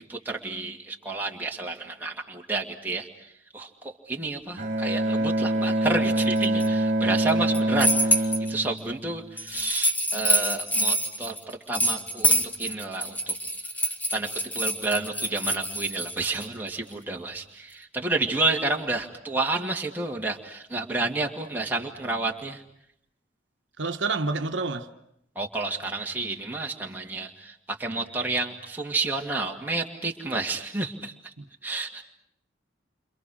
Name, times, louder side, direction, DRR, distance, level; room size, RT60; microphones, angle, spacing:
voice 1, 0.0-11.4 11.7-13.3 13.8-14.3 14.5-22.6 25.4-31.3 31.6-32.0, right 3 dB, 10° right, 2.3 m, -30 dB
Bowed string instrument, 4.6-9.6, right 1 dB, 40° right, 2.5 m, -25 dB
sound 1, 6.2-6.7 7.3-8.5 9.4-16.4, equal, 10° left, 1.5 m, -26 dB
voice 2, 23.8-24.9 31.4-31.5, right 3 dB, 75° right, 1.3 m, -28 dB
29.5 x 26.5 x 6.4 m
head